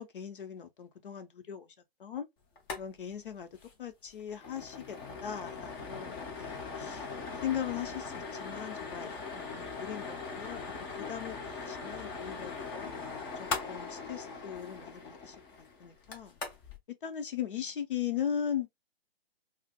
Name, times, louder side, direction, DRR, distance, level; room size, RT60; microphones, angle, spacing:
voice 1, 0.0-1.7 2.0-2.3 2.8-3.5 3.8-7.1 7.4-10.6 11.0-12.9 13.4-15.3 15.8-16.4 17.0-18.7, left 9 dB, 55° left, 0.8 m, -38 dB
sound 1, 2.6-2.8 3.1-3.2 3.5-3.7 4.1-16.8, left 4 dB, 20° left, 0.7 m, -40 dB
4.8 x 2.1 x 2.2 m
figure-of-eight pair, 130°, 31 cm